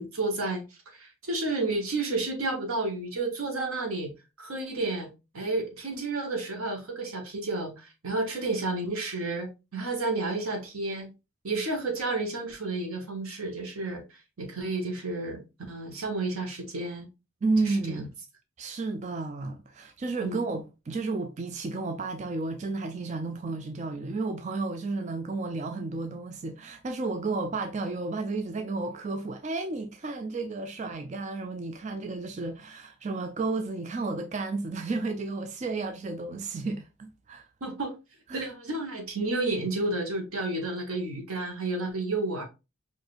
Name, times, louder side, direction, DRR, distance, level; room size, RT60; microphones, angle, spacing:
voice 1, 0.0-4.1 4.4-5.1 5.3-11.1 11.4-14.0 14.4-15.4 15.7-17.1 17.6-18.1 20.2-20.4 37.6-37.9 38.3-42.4, right 2 dB, 90° right, 1.2 m, -31 dB
voice 2, 17.4-18.1 18.6-37.5 38.3-38.5, right 3 dB, 35° right, 0.3 m, -32 dB
4.9 x 2.6 x 2.5 m
head